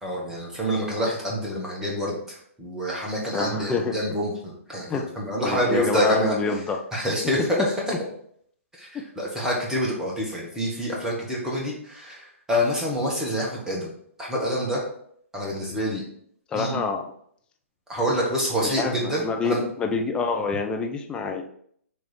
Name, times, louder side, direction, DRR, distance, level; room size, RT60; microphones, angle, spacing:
voice 1, 0.0-6.3 6.9-7.6 8.7-13.9 14.2-14.8 15.3-16.0 16.5-16.8 17.9-19.7, equal, 5° right, -3 dB, 1.7 m, -27 dB
voice 2, 3.3-4.0 4.9-5.1 5.4-6.8 16.5-17.0 18.6-21.4, left 4 dB, 10° left, 3 dB, 0.7 m, -27 dB
6.3 x 3.4 x 4.7 m, 0.65 s
figure-of-eight pair, 120°, 7 cm